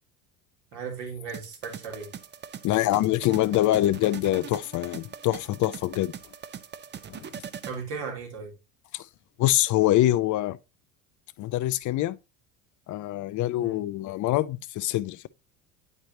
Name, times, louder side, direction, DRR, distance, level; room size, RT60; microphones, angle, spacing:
voice 1, 0.7-2.1 7.7-8.5 13.6-13.8, right 5 dB, 60° right, 2.7 m, -36 dB
sound 1, 1.3-7.8, right 8 dB, 25° right, 0.5 m, -41 dB
voice 2, 2.6-6.1 7.1-7.3 8.9-9.1 9.4-10.6 11.4-12.2 12.9-15.3, left 15 dB, 40° left, 0.5 m, -25 dB
8.9 x 4.7 x 2.7 m
hypercardioid pair, 75°, 46 cm